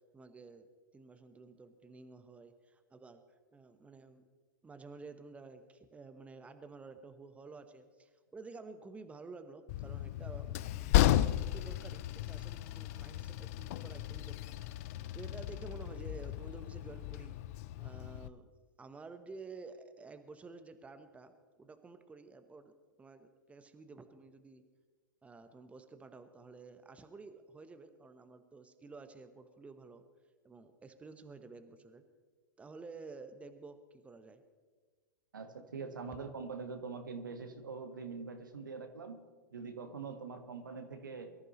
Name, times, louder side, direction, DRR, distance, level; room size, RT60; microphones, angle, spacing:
voice 1, 0.1-0.7 0.9-3.2 3.5-4.3 4.6-17.4 17.8-18.5 18.8-21.3 21.6-24.6 25.2-30.0 30.4-32.0 32.6-34.4, right 4 dB, 10° right, 9 dB, 1.1 m, -51 dB
Train, 9.7-18.3, left 13 dB, 45° left, 0.6 m, -34 dB
voice 2, 35.3-41.4, right 4 dB, 75° right, 6 dB, 1.8 m, -44 dB
23.5 x 14.0 x 3.2 m, 1.5 s
figure-of-eight pair, 105°, 11 cm